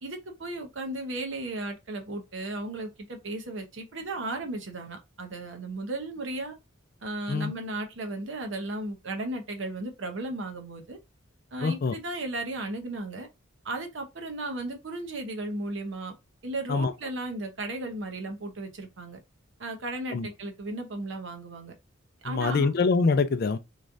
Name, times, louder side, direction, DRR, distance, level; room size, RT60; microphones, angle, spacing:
voice 1, 0.0-6.5 7.0-11.0 11.5-13.3 13.6-16.1 16.4-19.2 19.6-21.7 22.2-22.7, right 2 dB, 60° right, 0.8 m, -35 dB
voice 2, 11.6-12.0 16.7-16.9 20.1-20.3 22.2-23.6, left 4 dB, 45° left, 0.3 m, -24 dB
3.6 x 3.1 x 2.5 m
head